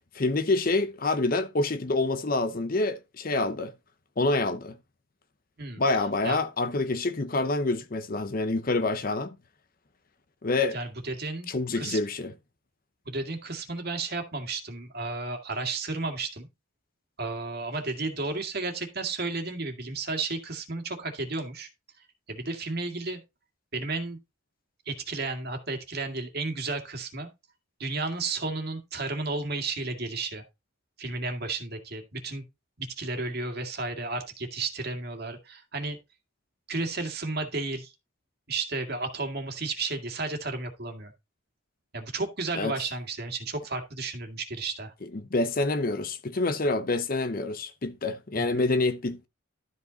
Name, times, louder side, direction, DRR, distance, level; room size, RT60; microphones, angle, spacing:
voice 1, 0.1-3.7 4.2-4.8 5.8-9.4 10.4-10.8 11.5-12.3 42.5-42.7 45.1-49.3, left 2 dB, 45° left, 0.7 m, -27 dB
voice 2, 10.7-11.5 11.7-12.0 13.1-16.5 17.2-21.7 22.3-23.2 23.7-24.2 24.9-27.3 27.8-30.4 31.0-32.4 32.8-36.0 36.7-37.9 38.5-41.1 41.9-44.9 48.4-48.7, right 3 dB, 50° right, 1.9 m, -33 dB
12.5 x 5.3 x 4.0 m
head